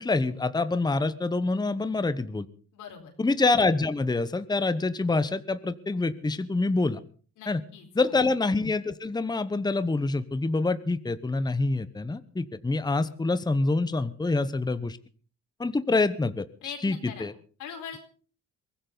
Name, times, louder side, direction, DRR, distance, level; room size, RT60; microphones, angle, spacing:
voice 1, 0.0-2.5 3.2-7.0 7.5-7.6 7.9-15.0 15.6-16.4 16.8-17.3, left 3 dB, 15° left, 13 dB, 1.0 m, -26 dB
voice 2, 2.7-3.1 7.4-8.2 16.6-17.3 17.6-18.0, left 8 dB, 85° left, 4 dB, 4.5 m, -42 dB
23.0 x 15.5 x 4.0 m, 0.41 s
cardioid pair, 90°, 30 cm